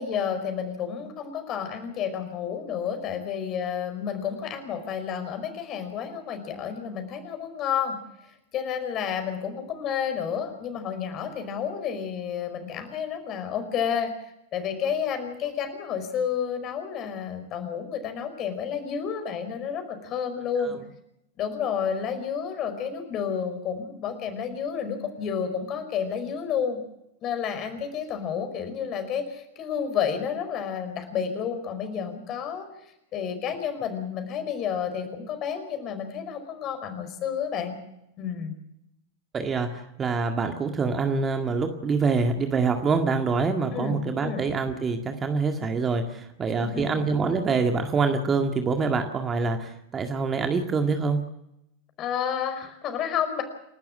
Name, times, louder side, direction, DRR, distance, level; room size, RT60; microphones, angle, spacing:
voice 1, 0.0-8.0 8.5-14.1 14.5-20.7 21.4-26.8 27.2-32.7 33.1-37.7 38.2-38.5 43.7-44.5 46.6-46.9 52.0-53.4, left 7 dB, 35° left, 7 dB, 5.1 m, -30 dB
voice 2, 39.3-51.2, right 4 dB, 20° right, 5 dB, 2.0 m, -25 dB
29.0 x 13.0 x 7.4 m, 0.83 s
figure-of-eight pair, 90°, 0 cm